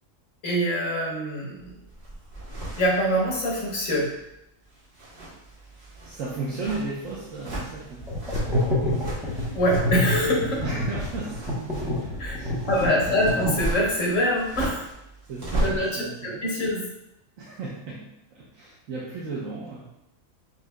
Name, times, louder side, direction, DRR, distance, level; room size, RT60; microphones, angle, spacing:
voice 1, 0.4-1.7 2.8-4.1 9.5-10.6 12.2-12.3 12.7-14.9 15.6-16.8, equal, 75° left, -3 dB, 1.5 m, -24 dB
sound 1, 1.6-4.4 4.7-15.9, right 1 dB, 45° right, 1.4 m, -36 dB
voice 2, 6.0-8.1 10.6-12.5 12.9-13.0 15.3-16.5 17.4-19.9, right 3 dB, 80° right, -6 dB, 1.2 m, -35 dB
sound 2, 8.0-14.1, left 1 dB, 5° right, 0.6 m, -27 dB
6.0 x 2.9 x 2.2 m, 0.86 s
omnidirectional pair, 1.4 m